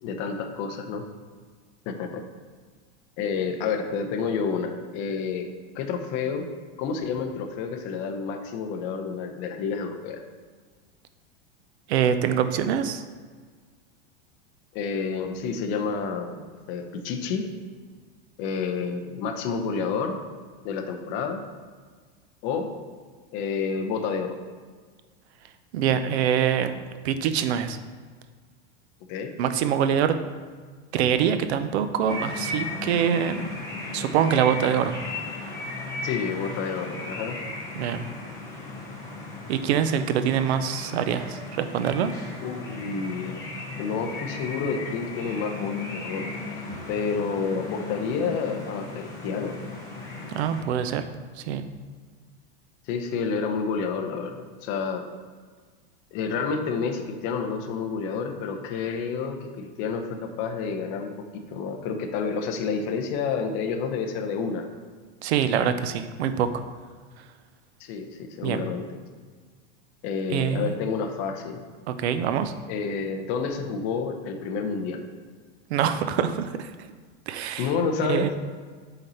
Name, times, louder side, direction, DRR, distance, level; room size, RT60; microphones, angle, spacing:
voice 1, 0.0-1.0 1.9-2.2 3.2-6.5 6.8-10.2 14.7-16.4 16.7-17.5 18.4-20.2 20.6-21.4 22.4-22.7 23.3-24.4 29.1-29.3 36.0-37.4 42.4-43.4 43.8-46.3 46.9-49.6 52.9-55.0 56.1-61.1 61.5-64.7 67.8-69.0 70.0-71.6 72.7-75.0 77.6-78.3, left 5 dB, 35° left, 5 dB, 0.6 m, -29 dB
voice 2, 11.9-13.0 25.7-26.7 27.0-27.8 29.4-30.2 30.9-33.5 33.9-35.0 37.8-38.0 39.5-42.1 50.3-51.0 51.4-51.7 65.2-66.5 68.4-68.6 70.3-70.7 71.9-72.5 75.7-76.7 77.3-77.7 78.1-78.3, right 8 dB, 80° right, 10 dB, 0.6 m, -24 dB
sound 1, 32.1-50.6, left 3 dB, 10° left, 1.0 m, -36 dB
6.5 x 4.1 x 4.3 m, 1.5 s
supercardioid pair, 160°, 32 cm